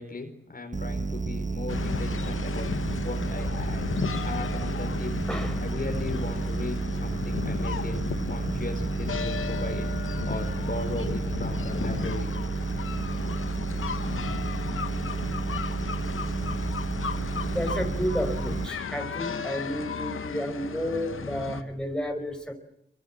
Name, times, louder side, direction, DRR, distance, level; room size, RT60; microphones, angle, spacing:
voice 1, 0.0-2.7 3.0-3.8 4.2-5.1 5.6-9.9 10.3-12.3, left 2 dB, 45° left, 5 dB, 4.7 m, -37 dB
sound 1, 0.7-18.7, right 3 dB, 40° right, 1.3 m, -31 dB
sound 2, 1.7-21.6, left 6 dB, 85° left, 1.4 m, -35 dB
voice 2, 5.3-5.7 14.3-14.4 17.4-22.5, equal, 5° left, 4 dB, 5.3 m, -31 dB
25.5 x 24.0 x 7.4 m, 0.74 s
wide cardioid pair, 65°, 21 cm